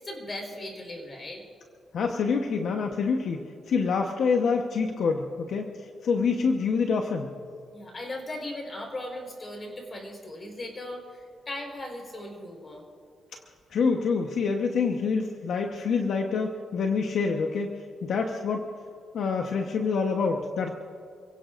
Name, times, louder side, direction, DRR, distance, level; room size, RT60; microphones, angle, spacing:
voice 1, 0.0-1.4 7.7-12.8, left 1 dB, 30° left, 1 dB, 4.4 m, -38 dB
voice 2, 1.9-7.3 13.7-17.7 18.0-18.7 19.1-20.7, left 5 dB, 65° left, 3 dB, 1.1 m, -26 dB
29.5 x 17.0 x 2.6 m, 2.4 s
cardioid pair, 115°, 0 cm